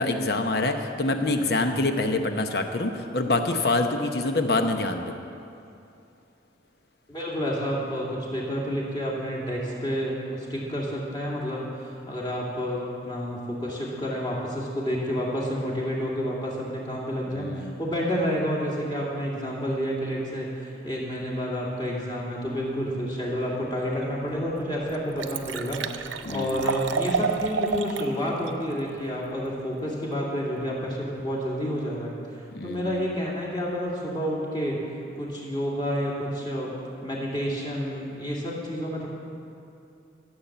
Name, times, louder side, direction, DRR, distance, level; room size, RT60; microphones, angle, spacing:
voice 1, 0.0-5.1 17.3-17.8 26.2-26.8 32.5-33.0, left 2 dB, 55° left, 6 dB, 0.9 m, -26 dB
voice 2, 7.1-32.1 32.6-34.8 35.2-39.1, equal, 25° left, -4 dB, 2.4 m, -29 dB
Liquid, 24.0-24.1 24.6-24.7 24.9-28.1 28.5-28.6, right 5 dB, 80° right, 0.5 m, -29 dB
14.5 x 7.2 x 8.0 m, 2.6 s
head